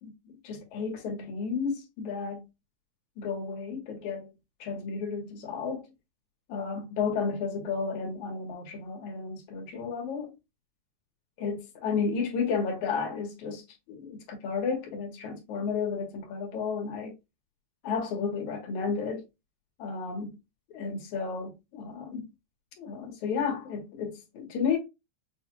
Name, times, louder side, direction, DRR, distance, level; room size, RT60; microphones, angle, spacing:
voice 1, 0.0-2.4 3.2-4.3 4.6-5.9 6.5-10.3 11.4-13.6 13.9-17.1 17.8-19.2 19.8-20.4 20.7-22.3 22.8-24.8, left 5 dB, 80° left, 2.7 m, -32 dB
6.6 x 2.3 x 3.0 m
omnidirectional pair, 3.3 m